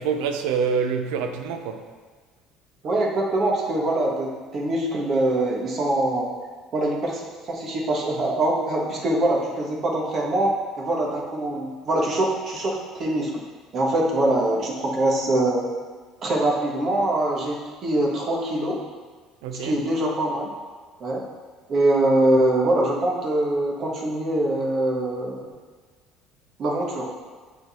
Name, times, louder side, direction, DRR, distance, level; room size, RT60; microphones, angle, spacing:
voice 1, 0.0-1.9 19.4-19.8, right 6 dB, 85° right, 6 dB, 0.6 m, -26 dB
voice 2, 2.8-6.3 6.7-13.4 13.7-15.7 16.2-18.8 19.6-20.5 21.0-21.2 21.7-25.5 26.6-27.1, right 1 dB, 45° right, -2 dB, 1.5 m, -23 dB
7.9 x 3.9 x 4.3 m, 1.5 s
supercardioid pair, 100°, 0 cm